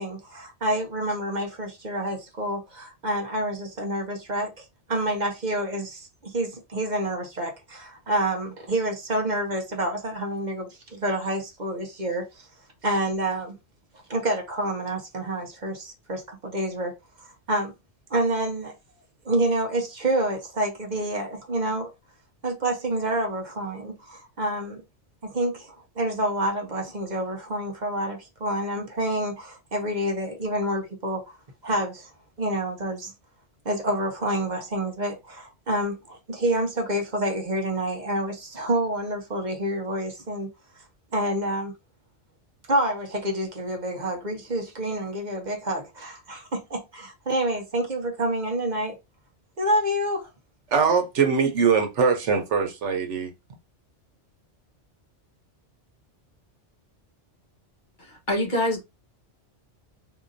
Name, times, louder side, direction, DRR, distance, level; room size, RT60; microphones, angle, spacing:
voice 1, 0.0-12.2 12.8-13.6 14.1-17.7 18.1-18.7 19.2-21.9 22.4-24.8 25.2-31.4 31.6-32.1 32.4-33.1 33.6-40.5 41.1-41.7 42.7-49.0 49.6-50.3, right 1 dB, 45° right, 0.9 m, -28 dB
voice 2, 50.7-53.3, right 5 dB, 80° right, 1.2 m, -22 dB
voice 3, 58.0-58.8, left 1 dB, 45° left, 1.2 m, -25 dB
3.8 x 2.8 x 2.5 m
omnidirectional pair, 1.2 m